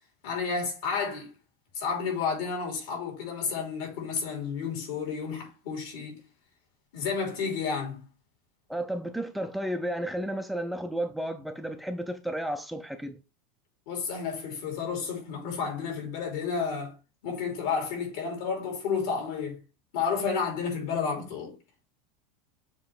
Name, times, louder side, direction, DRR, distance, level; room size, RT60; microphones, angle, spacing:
voice 1, 0.2-1.3 1.7-6.2 6.9-8.0 13.9-16.9 17.2-19.6 19.9-21.5, left 5 dB, 60° left, 3.1 m, -31 dB
voice 2, 8.7-13.2, right 1 dB, ahead, 0.4 m, -32 dB
7.2 x 3.0 x 4.7 m
supercardioid pair, 160°, 0 cm